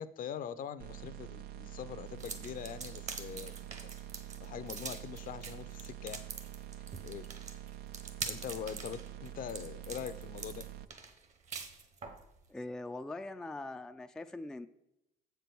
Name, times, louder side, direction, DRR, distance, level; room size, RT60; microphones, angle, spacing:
voice 1, 0.0-3.6 3.8-3.9 4.4-6.2 7.0-7.3 8.2-10.6, left 8 dB, 55° left, 13 dB, 0.6 m, -43 dB
sound 1, 0.8-10.8, right 12 dB, 65° right, 0.4 m, -46 dB
sound 2, 2.2-12.2, right 5 dB, 45° right, 1.1 m, -44 dB
voice 2, 12.5-14.7, left 2 dB, 5° left, 8 dB, 0.3 m, -42 dB
7.4 x 4.6 x 6.9 m, 0.84 s
cardioid pair, 110°, 17 cm